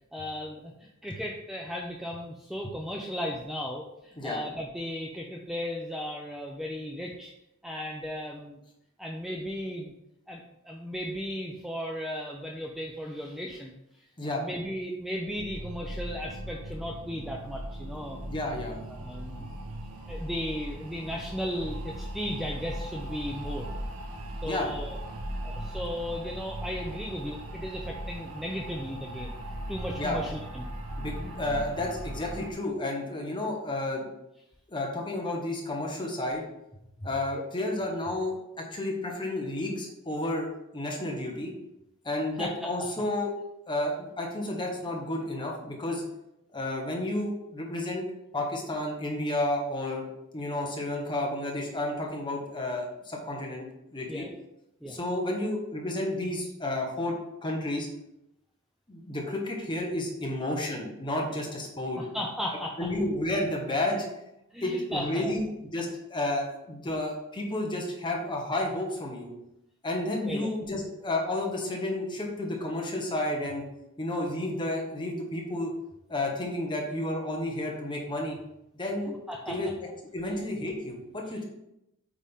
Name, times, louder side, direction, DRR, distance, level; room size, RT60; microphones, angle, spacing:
voice 1, 0.1-7.3 7.6-8.6 9.0-9.9 10.3-13.8 14.4-18.2 18.9-19.5 20.1-23.7 24.4-25.0 25.4-29.4 29.7-30.7 37.3-37.4 42.4-42.9 54.1-54.4 54.8-55.0 62.0-62.9 64.5-65.3 70.2-70.5 79.1-79.6 80.2-80.3 81.3-81.4, equal, ahead, -1 dB, 0.5 m, -36 dB
sound 1, 15.3-32.5, right 1 dB, 90° right, 1.2 m, -38 dB
voice 2, 18.3-18.8 24.4-24.7 30.0-30.2 31.0-34.1 34.7-36.4 37.0-41.5 42.0-43.3 43.7-46.0 46.5-48.1 48.3-50.1 50.3-53.7 53.9-54.3 54.8-57.1 57.4-57.9 58.9-62.0 62.8-64.1 64.6-69.3 69.8-73.6 74.0-75.7 76.1-78.4 78.7-79.1 79.5-79.7 80.1-81.4, left 1 dB, 20° left, 0 dB, 1.2 m, -31 dB
8.3 x 3.8 x 3.6 m, 0.85 s
head